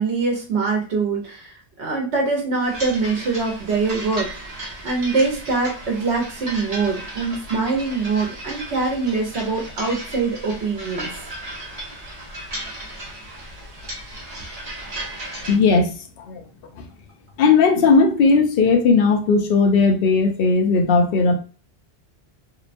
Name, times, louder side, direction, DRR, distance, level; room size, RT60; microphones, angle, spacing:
voice 1, 0.0-4.3 4.8-11.1, right 4 dB, 75° right, 1.0 m, -23 dB
sound 1, 2.6-15.6, right 1 dB, 40° right, 0.9 m, -35 dB
voice 2, 15.5-15.9 16.2-16.4 16.8-16.9 17.4-21.3, left 4 dB, 65° left, 0.7 m, -17 dB
2.8 x 2.1 x 2.5 m
omnidirectional pair, 1.1 m